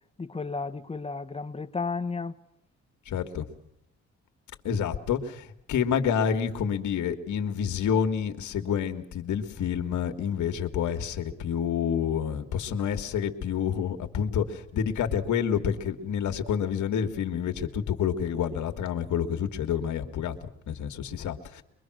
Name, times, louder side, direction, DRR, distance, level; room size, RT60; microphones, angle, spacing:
voice 1, 0.2-2.4, left 4 dB, 20° left, 1.0 m, -33 dB
voice 2, 3.1-3.5 4.6-21.6, left 8 dB, 75° left, 2.0 m, -28 dB
23.0 x 23.0 x 6.4 m
cardioid pair, 90°, 30 cm